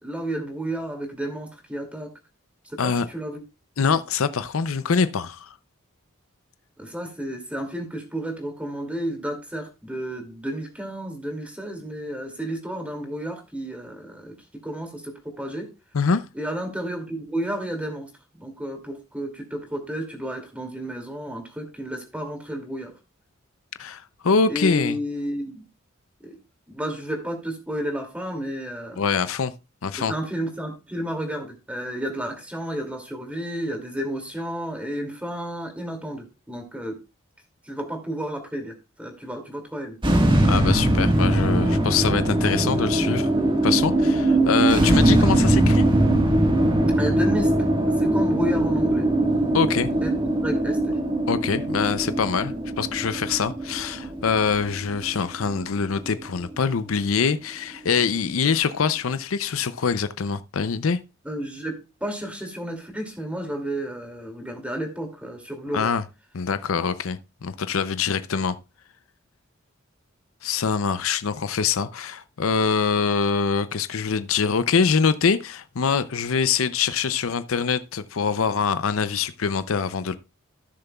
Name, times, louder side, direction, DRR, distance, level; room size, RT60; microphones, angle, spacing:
voice 1, 0.0-2.1 2.7-3.4 6.8-14.4 14.6-15.7 16.3-18.1 18.4-22.9 24.5-25.7 26.2-26.4 26.7-29.0 30.0-37.0 37.7-40.0 47.0-49.1 50.0-51.0 61.2-65.9, right 1 dB, 5° right, 2.4 m, -32 dB
voice 2, 3.8-5.5 15.9-16.2 23.8-25.0 29.0-29.5 29.8-30.1 40.4-43.3 43.6-45.9 49.5-49.9 51.3-61.0 65.7-66.0 66.3-68.6 70.4-80.2, left 5 dB, 75° left, 0.6 m, -24 dB
sound 1, 40.0-56.4, right 1 dB, 25° right, 1.5 m, -21 dB
16.5 x 6.7 x 2.3 m
head